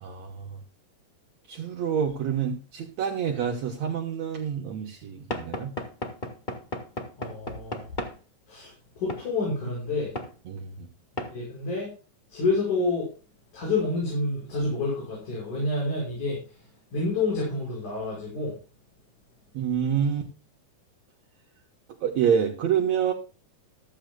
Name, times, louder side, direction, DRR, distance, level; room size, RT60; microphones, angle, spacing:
voice 1, 0.0-0.5 1.5-5.7 10.5-10.9 19.5-20.3 22.0-23.1, right 8 dB, 65° right, 2 dB, 2.3 m, -27 dB
Knock / Wood, 5.3-8.2 9.1-9.3 10.2-10.3 11.2-11.4, left 1 dB, 40° left, 0.6 m, -34 dB
voice 2, 7.2-7.9 8.5-10.1 11.3-11.9 12.3-13.1 13.5-16.4 16.9-18.6, left 3 dB, 70° left, -4 dB, 6.8 m, -28 dB
14.5 x 14.0 x 2.2 m, 0.33 s
omnidirectional pair, 3.6 m